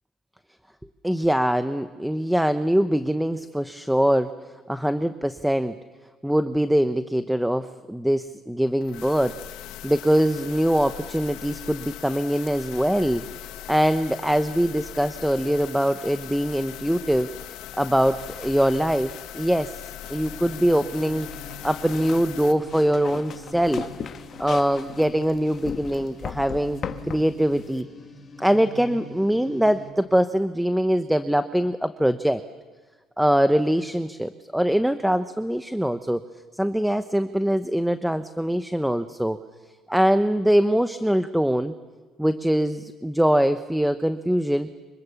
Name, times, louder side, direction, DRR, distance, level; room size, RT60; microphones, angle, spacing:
voice 1, 1.0-4.3 4.7-5.8 6.2-9.4 9.8-13.2 13.7-17.3 17.8-19.7 20.1-21.3 21.6-23.8 24.4-26.8 27.1-27.9 28.4-32.4 33.2-36.2 36.5-39.4 39.9-41.7 42.2-44.7, equal, 5° right, 10 dB, 0.9 m, -23 dB
sound 1, 8.8-22.5, left 13 dB, 85° left, 1.5 m, -40 dB
sound 2, 18.0-27.8, left 7 dB, 50° left, 1.5 m, -39 dB
sound 3, 20.3-29.9, left 1 dB, 25° left, 5.9 m, -44 dB
25.5 x 25.0 x 7.2 m, 1.4 s
cardioid pair, 100°, 0 cm